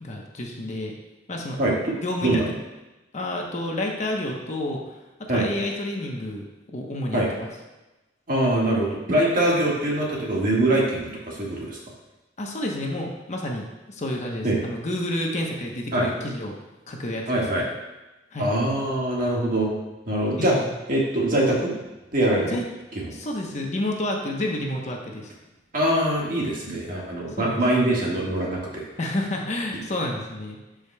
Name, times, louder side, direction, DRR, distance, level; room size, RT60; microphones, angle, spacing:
voice 1, 0.0-0.9 1.3-1.6 2.0-2.4 3.1-4.8 5.3-6.4 6.7-7.5 12.4-16.5 16.9-17.7 18.3-18.5 20.4-20.7 22.5-22.6 23.1-25.3 27.4-27.6 29.0-30.6, left 1 dB, 40° left, 0 dB, 0.9 m, -29 dB
voice 2, 1.6-1.9 2.2-2.5 5.3-5.5 7.1-7.3 8.3-11.8 14.4-14.6 15.9-16.1 17.3-17.6 18.4-19.7 20.0-20.6 20.9-21.7 22.1-22.5 25.7-28.8, right 1 dB, 50° right, -3 dB, 1.7 m, -23 dB
12.0 x 5.1 x 2.3 m, 1.1 s
head